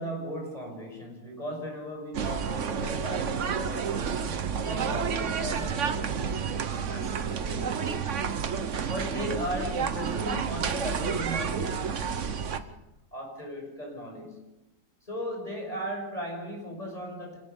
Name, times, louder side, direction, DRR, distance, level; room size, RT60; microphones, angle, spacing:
voice 1, 0.0-8.5 8.9-12.7 13.1-14.4 15.0-17.4, equal, 20° left, 1 dB, 6.7 m, -37 dB
sound 1, 2.1-12.6, right 6 dB, 50° right, 1.2 m, -30 dB
27.0 x 18.5 x 5.5 m, 0.95 s
omnidirectional pair, 1.9 m